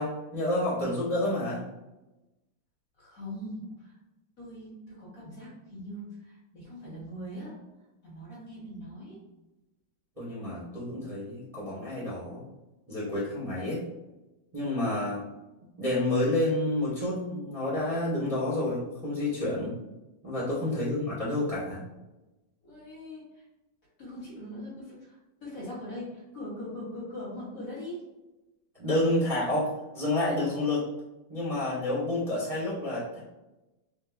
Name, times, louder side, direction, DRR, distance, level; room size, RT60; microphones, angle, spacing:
voice 1, 0.0-1.6 10.2-12.4 12.9-13.8 14.5-15.2 15.8-19.7 20.2-21.8 28.8-30.9 31.3-33.2, left 1 dB, 30° right, -11 dB, 0.6 m, -29 dB
voice 2, 3.0-3.9 4.4-7.5 8.0-9.2 20.7-21.0 22.6-23.2 24.0-25.2 25.4-28.0, left 1 dB, 50° left, -7 dB, 1.3 m, -41 dB
3.8 x 2.5 x 2.4 m, 1.0 s
omnidirectional pair, 2.4 m